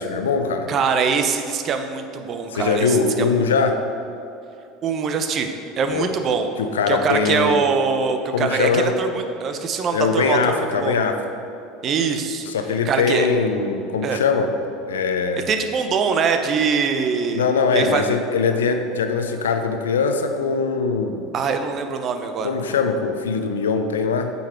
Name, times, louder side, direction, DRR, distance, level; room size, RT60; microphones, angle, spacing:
voice 1, 0.0-0.7 2.5-3.8 5.9-6.1 6.6-7.6 8.3-8.9 9.9-11.2 12.4-14.5 14.9-15.5 17.3-21.2 22.4-24.3, left 5 dB, 80° left, 7 dB, 0.6 m, -21 dB
voice 2, 0.7-3.3 4.8-5.5 5.8-6.5 6.9-11.0 11.8-12.5 12.9-13.3 14.0-14.2 15.5-17.4 17.7-18.0 21.3-22.5, right 5 dB, 45° right, 7 dB, 0.8 m, -23 dB
9.0 x 5.5 x 4.5 m, 2.7 s
hypercardioid pair, 75°, 0 cm